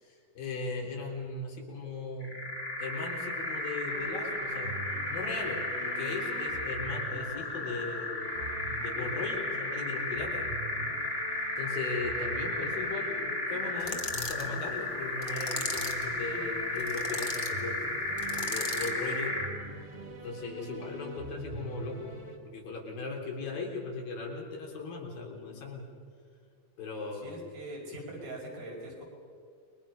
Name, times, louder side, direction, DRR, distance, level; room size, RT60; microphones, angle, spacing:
voice 1, 0.0-2.4 2.8-4.8 5.1-8.4 8.7-10.5 11.6-17.9 18.3-19.4 20.2-22.1 22.4-25.9 26.8-27.3 27.9-28.0, left 3 dB, 80° left, -1 dB, 5.4 m, -38 dB
sound 1, 2.2-19.6, left 2 dB, 15° left, 3.3 m, -34 dB
sound 2, 3.9-22.4, right 3 dB, 25° right, 1.7 m, -45 dB
sound 3, 13.8-14.5 15.2-16.1 16.8-17.5 18.2-19.0, left 3 dB, 45° left, 0.6 m, -37 dB
voice 2, 27.2-29.0, right 1 dB, 90° right, -1 dB, 7.3 m, -42 dB
29.5 x 22.5 x 5.8 m, 2.2 s
omnidirectional pair, 4.1 m